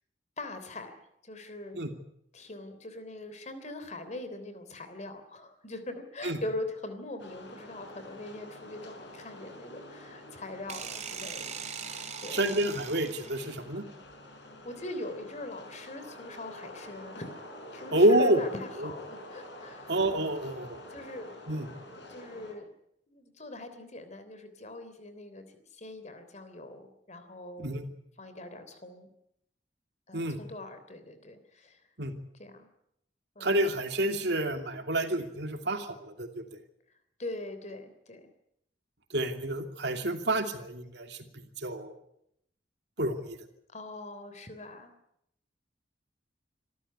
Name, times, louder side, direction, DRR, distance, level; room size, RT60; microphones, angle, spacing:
voice 1, 0.4-0.9 1.2-1.8 2.3-12.4 14.6-17.4 17.7-20.0 20.9-21.3 22.1-22.7 23.1-27.7 28.2-29.1 30.1-31.8 32.4-32.7 33.4-33.6 37.2-38.3 43.7-44.9, left 2 dB, 40° left, 9 dB, 3.4 m, -42 dB
sound 1, 7.2-22.5, left 1 dB, 70° left, 5.4 m, -48 dB
sound 2, 10.7-13.6, right 6 dB, 40° right, 2.6 m, -40 dB
voice 2, 12.3-13.8 17.9-18.4 19.9-20.8 21.5-21.7 27.6-27.8 30.1-30.4 32.0-32.1 33.4-36.4 39.1-41.2 41.6-42.0 43.0-43.4, right 1 dB, 70° right, 6 dB, 2.8 m, -28 dB
26.5 x 13.5 x 9.7 m, 0.78 s
head